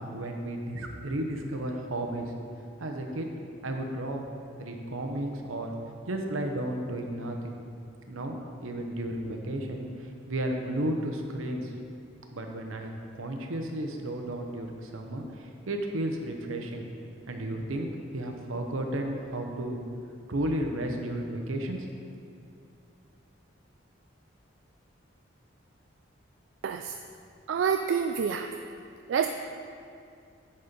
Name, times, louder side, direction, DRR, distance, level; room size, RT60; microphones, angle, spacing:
voice 1, 0.0-2.3 2.8-3.3 3.6-4.3 4.6-5.7 6.1-7.6 8.1-11.7 12.3-12.9 13.2-16.9 17.3-19.8 20.3-21.9, right 1 dB, 85° right, 3 dB, 0.9 m, -33 dB
voice 2, 26.6-27.0 27.5-28.5 29.1-29.3, right 7 dB, 65° right, 5 dB, 0.3 m, -27 dB
10.5 x 4.3 x 5.2 m, 2.4 s
head